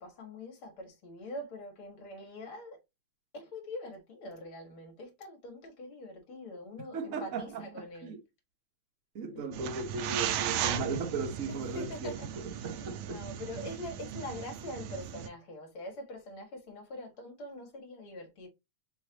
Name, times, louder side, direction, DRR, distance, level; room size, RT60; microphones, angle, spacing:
voice 1, 0.0-2.8 3.3-8.1 9.3-9.4 11.7-12.3 12.5-18.5, left 1 dB, 50° left, 2.3 m, -44 dB
voice 2, 6.9-8.2 9.1-12.1 12.6-13.2, right 4 dB, 50° right, 1.0 m, -37 dB
sound 1, 9.5-15.3, right 10 dB, 75° right, 1.4 m, -36 dB
5.9 x 3.1 x 2.9 m
omnidirectional pair, 3.4 m